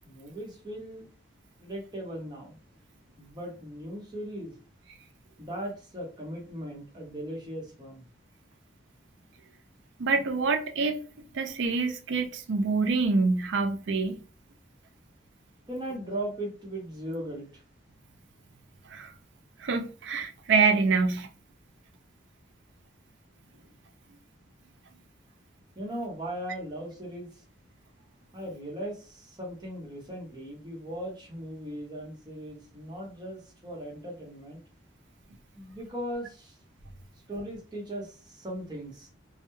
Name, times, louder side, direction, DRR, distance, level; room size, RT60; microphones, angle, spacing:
voice 1, 0.0-1.1 1.6-2.6 3.2-4.6 5.4-8.0 15.7-17.6 25.8-27.4 28.3-34.6 35.5-36.6 37.3-39.1, right 1 dB, 25° right, 0.8 m, -38 dB
voice 2, 10.0-11.0 11.3-14.2 18.9-19.1 19.6-21.3, right 4 dB, 70° right, 0.4 m, -26 dB
2.2 x 2.0 x 2.9 m
head